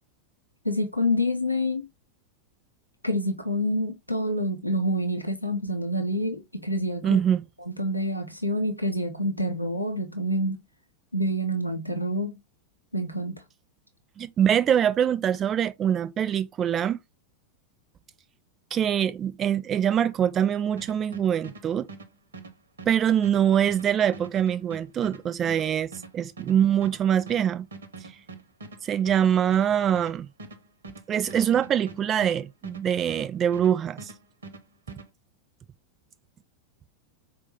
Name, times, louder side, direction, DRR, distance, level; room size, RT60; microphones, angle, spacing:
voice 1, 0.6-1.9 3.0-7.2 7.7-10.6 11.1-12.4 12.9-13.4, equal, 90° left, 0.5 m, -27 dB
voice 2, 7.0-7.4 14.2-17.0 18.7-21.9 22.9-27.7 28.8-30.3 31.1-34.1, right 9 dB, 25° right, 0.4 m, -24 dB
sound 1, 20.8-33.7 34.0-35.1, right 3 dB, 70° right, 0.6 m, -43 dB
4.4 x 2.2 x 2.8 m
figure-of-eight pair, 90°, 0 cm